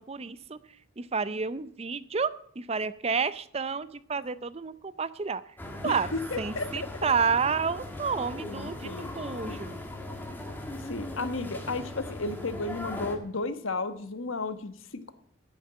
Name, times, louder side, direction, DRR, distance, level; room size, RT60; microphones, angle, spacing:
voice 1, 0.1-0.6 1.0-2.3 2.6-5.4 5.8-6.1 6.4-8.9 9.2-9.8, right 5 dB, 30° right, 16 dB, 0.5 m, -30 dB
sound 1, 5.6-13.2, left 1 dB, 10° left, 1.8 m, -39 dB
voice 2, 5.8-6.9 8.4-9.1 9.4-9.6 10.9-15.1, left 3 dB, 85° left, 10 dB, 1.2 m, -34 dB
10.0 x 8.7 x 9.0 m, 0.63 s
head